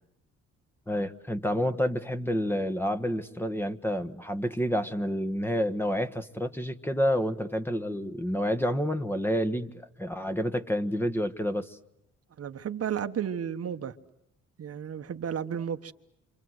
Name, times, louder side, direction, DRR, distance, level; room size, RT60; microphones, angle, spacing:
voice 1, 0.9-9.7 10.0-11.8, equal, 5° left, 8 dB, 1.5 m, -29 dB
voice 2, 12.4-13.9 14.6-15.9, right 8 dB, 50° right, 8 dB, 1.3 m, -33 dB
28.0 x 26.0 x 7.9 m, 0.79 s
cardioid pair, 90°, 30 cm